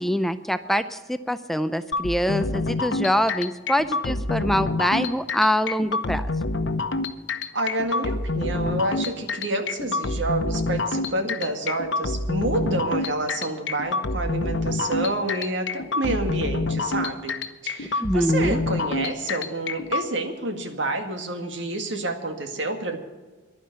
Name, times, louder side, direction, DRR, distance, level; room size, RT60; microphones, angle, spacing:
voice 1, 0.0-6.3 18.0-18.6, equal, ahead, 11 dB, 0.4 m, -24 dB
sound 1, 1.9-20.0, left 3 dB, 90° left, 0.9 m, -27 dB
voice 2, 7.5-17.4 17.6-23.0, right 2 dB, 80° right, 5 dB, 1.9 m, -28 dB
11.5 x 9.7 x 9.4 m, 1.3 s
head